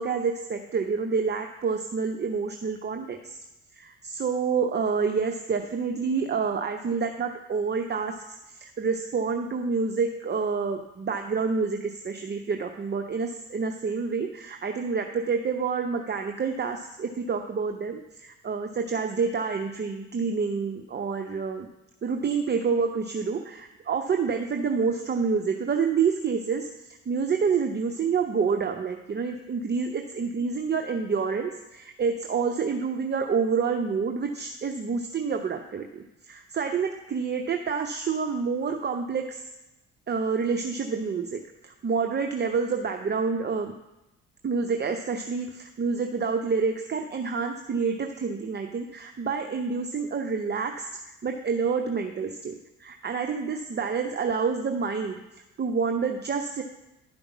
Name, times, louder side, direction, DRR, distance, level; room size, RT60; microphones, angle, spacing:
voice 1, 0.0-3.4 3.7-21.7 22.0-26.7 27.1-39.4 40.1-43.7 44.4-50.9 51.2-55.2 55.6-56.6, right 5 dB, 30° right, 4 dB, 0.8 m, -28 dB
11.5 x 5.2 x 6.0 m, 0.95 s
hypercardioid pair, 55°, 34 cm